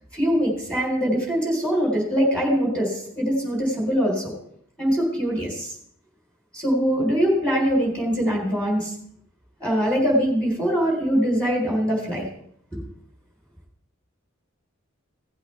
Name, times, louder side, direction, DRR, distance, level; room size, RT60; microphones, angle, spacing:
voice 1, 0.1-4.3 4.8-5.7 6.5-8.9 9.6-12.3 12.7-12.8, equal, 5° left, -3 dB, 4.1 m, -23 dB
17.5 x 8.3 x 3.4 m, 0.69 s
head